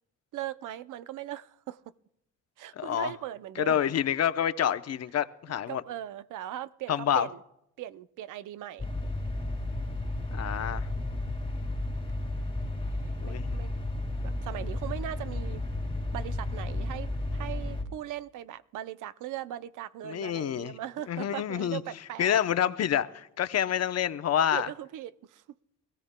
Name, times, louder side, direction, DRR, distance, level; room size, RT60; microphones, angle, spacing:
voice 1, 0.3-1.8 2.6-3.8 5.7-7.4 7.8-8.9 13.2-13.7 14.2-15.6 16.1-22.3 24.4-25.4, right 12 dB, 80° right, 0.6 m, -39 dB
voice 2, 2.8-3.1 3.6-5.8 6.9-7.3 10.3-10.9 13.2-13.5 20.0-20.7 21.1-21.8 22.2-24.7, left 9 dB, 55° left, 0.7 m, -27 dB
sound 1, 8.8-17.8, left 2 dB, 15° left, 1.9 m, -33 dB
25.0 x 15.5 x 2.2 m
cardioid pair, 90°, 31 cm